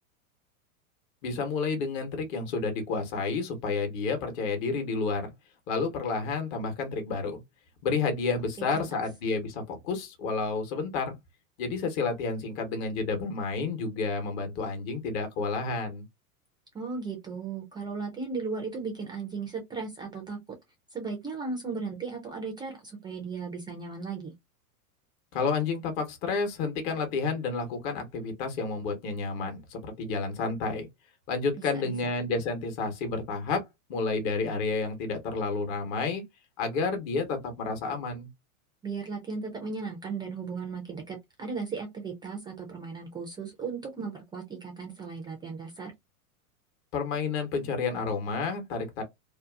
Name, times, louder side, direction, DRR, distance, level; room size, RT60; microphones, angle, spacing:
voice 1, 1.2-5.3 5.7-7.4 7.8-11.2 11.6-16.0 25.3-30.9 31.3-33.6 33.9-36.2 36.6-38.3 46.9-49.0, left 4 dB, 45° left, 1.1 m, -30 dB
voice 2, 8.6-9.0 16.7-20.4 20.9-24.3 31.7-31.9 38.8-45.9, right 4 dB, 10° right, 0.4 m, -36 dB
2.7 x 2.4 x 2.3 m
hypercardioid pair, 120°, 44 cm